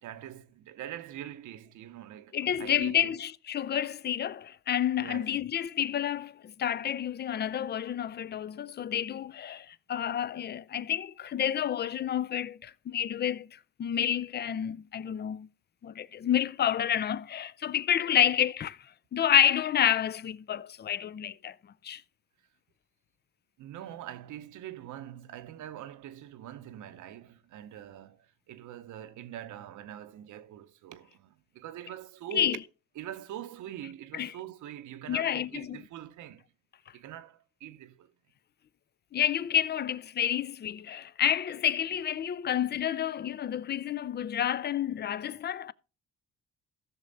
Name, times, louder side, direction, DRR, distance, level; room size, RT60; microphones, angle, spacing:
voice 1, 0.0-3.1 5.0-5.3 23.6-32.6 33.0-36.4 36.9-38.1, right 11 dB, 75° right, 0.8 m, -43 dB
voice 2, 2.3-13.5 13.8-15.5 15.8-18.8 19.1-21.5 21.8-22.0 32.3-32.6 34.1-34.3 35.1-35.8 39.1-45.7, left 10 dB, 35° left, 0.4 m, -29 dB
14.5 x 6.4 x 4.0 m
cardioid pair, 90°, 30 cm